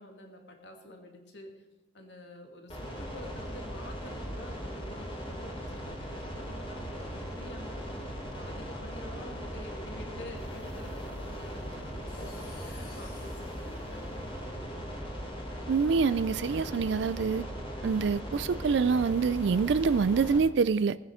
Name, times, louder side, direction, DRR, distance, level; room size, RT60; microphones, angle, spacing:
voice 1, 0.0-1.7 1.9-7.8 8.2-15.0, left 1 dB, 70° left, 3 dB, 2.4 m, -48 dB
sound 1, 2.7-20.4, equal, 30° left, 3.6 m, -39 dB
sound 2, 10.4-14.7, left 3 dB, 55° left, 3.9 m, -57 dB
voice 2, 15.7-17.5 17.8-21.0, right 5 dB, 70° right, 16 dB, 0.4 m, -26 dB
19.0 x 9.7 x 5.0 m, 1.2 s
head